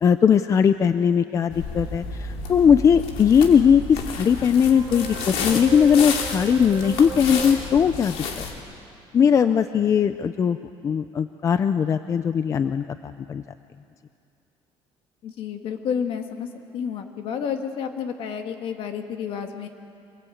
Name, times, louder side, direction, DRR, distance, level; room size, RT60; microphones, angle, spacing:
voice 1, 0.0-8.4 9.1-10.6 10.8-13.4, left 7 dB, 30° left, 11 dB, 0.5 m, -19 dB
sound 1, 1.5-8.5, left 6 dB, 75° left, 2.7 m, -32 dB
sound 2, 1.8-7.5, right 4 dB, 40° right, 1.5 m, -36 dB
voice 2, 15.2-16.5 16.7-19.7, left 7 dB, 60° left, 5 dB, 2.0 m, -30 dB
25.5 x 20.5 x 8.6 m, 2.5 s
cardioid pair, 155°, 10 cm